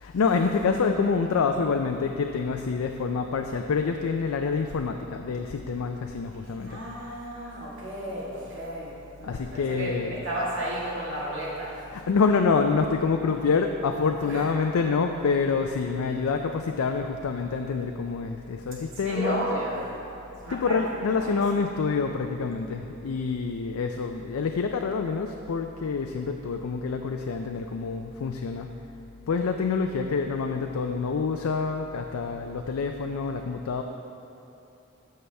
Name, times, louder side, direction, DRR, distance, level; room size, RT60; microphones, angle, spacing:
voice 1, 0.0-6.8 9.3-10.2 11.9-19.5 20.5-28.7 29.3-33.8, left 5 dB, 90° left, 5 dB, 0.4 m, -27 dB
voice 2, 6.7-12.0 14.2-14.5 19.0-19.9 20.4-21.4 29.8-29.9, right 1 dB, 60° right, -5 dB, 1.9 m, -33 dB
14.0 x 5.6 x 3.4 m, 2.9 s
head